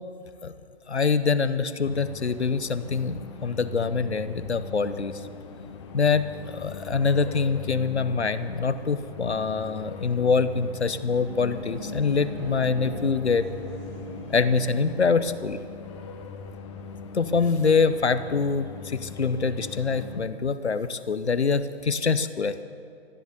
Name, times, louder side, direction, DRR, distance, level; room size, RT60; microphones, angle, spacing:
voice 1, 0.9-5.2 5.9-13.4 14.3-15.6 17.1-22.6, left 5 dB, 75° left, 12 dB, 0.9 m, -25 dB
sound 1, 1.8-20.2, left 5 dB, 25° left, 1.0 m, -41 dB
sound 2, 10.9-15.5, equal, 25° right, 2.6 m, -39 dB
15.0 x 9.4 x 7.9 m, 2.4 s
figure-of-eight pair, 130°, 33 cm